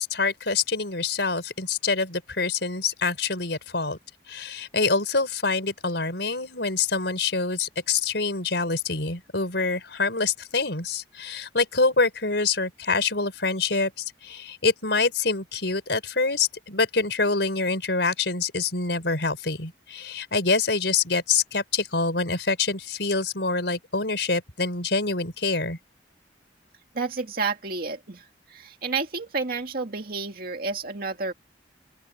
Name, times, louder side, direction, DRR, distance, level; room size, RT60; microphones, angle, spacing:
voice 1, 0.0-4.0 4.3-25.8, left 4 dB, 70° left, 5.0 m, -26 dB
voice 2, 26.9-31.3, right 4 dB, 55° right, 2.2 m, -30 dB
open air
head